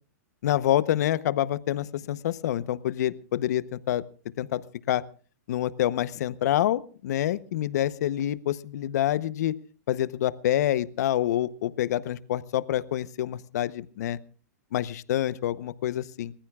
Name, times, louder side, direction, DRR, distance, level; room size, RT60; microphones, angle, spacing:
voice 1, 0.4-4.0 4.4-5.0 5.5-9.5 9.9-14.2 14.7-16.3, left 12 dB, 65° left, 17 dB, 0.8 m, -27 dB
29.0 x 15.0 x 2.4 m, 0.39 s
hypercardioid pair, 140°, 10 cm